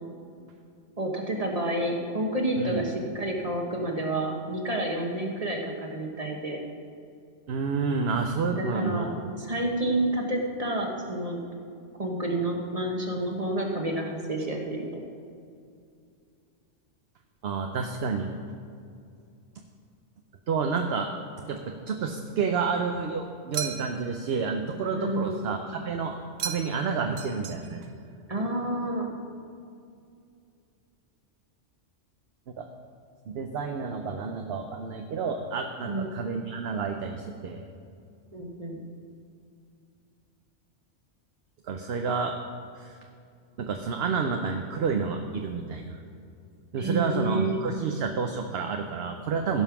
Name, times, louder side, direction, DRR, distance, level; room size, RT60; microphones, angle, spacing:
voice 1, 1.0-6.6 8.5-9.1 9.4-11.4 12.0-15.0 24.9-25.4 28.3-29.1 35.9-36.1 38.3-38.8 46.8-47.6, right 1 dB, 30° right, 1 dB, 1.3 m, -29 dB
voice 2, 7.5-9.1 17.4-18.4 20.5-21.1 21.5-27.8 32.5-32.7 33.3-37.7 41.6-42.3 42.7-43.0 43.6-46.0 46.7-49.6, right 5 dB, 60° right, 4 dB, 0.9 m, -30 dB
sound 1, 23.5-24.2 26.4-26.9 27.2-27.9, right 8 dB, 85° right, 1.1 m, -36 dB
16.0 x 5.5 x 6.0 m, 2.4 s
omnidirectional pair, 1.2 m